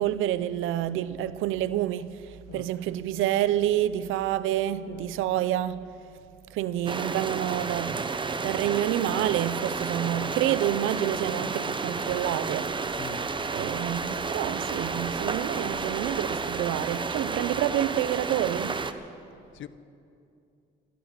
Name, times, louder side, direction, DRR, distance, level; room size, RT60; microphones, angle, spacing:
voice 1, 0.0-5.9 6.5-12.7 13.5-18.8, right 12 dB, 90° right, 0.6 m, -28 dB
sound 1, 6.9-18.9, right 4 dB, 25° right, 0.8 m, -31 dB
voice 2, 13.0-13.3 19.5-19.7, left 11 dB, 75° left, 0.7 m, -43 dB
17.0 x 13.0 x 5.8 m
cardioid pair, 90°, 20 cm